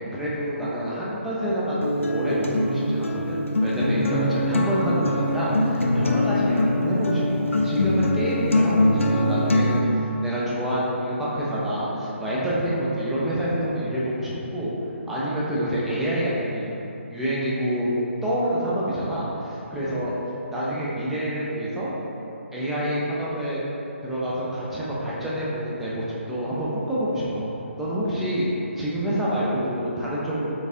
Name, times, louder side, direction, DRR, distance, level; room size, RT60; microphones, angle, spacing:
voice 1, 0.1-14.7 15.1-16.7 17.1-17.9 18.2-20.1 20.5-21.9 22.5-23.6 24.0-27.5 27.8-28.5 28.8-30.5, equal, 5° right, -9 dB, 0.3 m, -27 dB
Acoustic guitar, 1.8-9.8, left 1 dB, 70° left, 0.4 m, -23 dB
4.4 x 2.4 x 2.6 m, 3.0 s
figure-of-eight pair, 140°, 7 cm